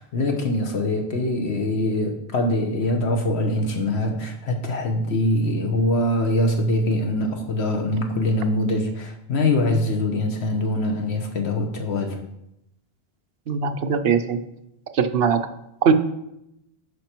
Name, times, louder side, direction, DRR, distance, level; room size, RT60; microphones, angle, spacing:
voice 1, 0.0-12.2, left 1 dB, 85° left, 3 dB, 1.5 m, -23 dB
voice 2, 13.5-14.4 14.9-15.4 15.8-15.9, right 6 dB, 70° right, 9 dB, 0.9 m, -20 dB
11.0 x 5.1 x 4.5 m, 0.83 s
omnidirectional pair, 1.1 m